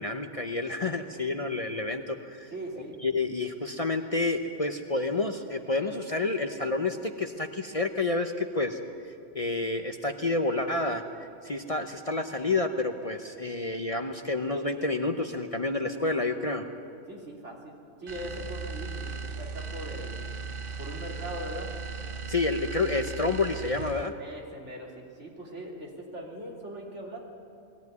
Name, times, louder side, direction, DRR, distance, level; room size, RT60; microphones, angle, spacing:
voice 1, 0.0-2.5 3.0-8.8 9.0-16.6 22.3-24.1, left 3 dB, 35° left, 5 dB, 0.8 m, -29 dB
voice 2, 2.5-3.0 17.1-20.3 20.8-21.7 24.2-27.2, right 1 dB, 70° right, -2 dB, 3.3 m, -40 dB
sound 1, 18.1-24.2, right 4 dB, 50° right, 0.8 m, -37 dB
21.0 x 16.0 x 9.5 m, 2.5 s
omnidirectional pair, 1.3 m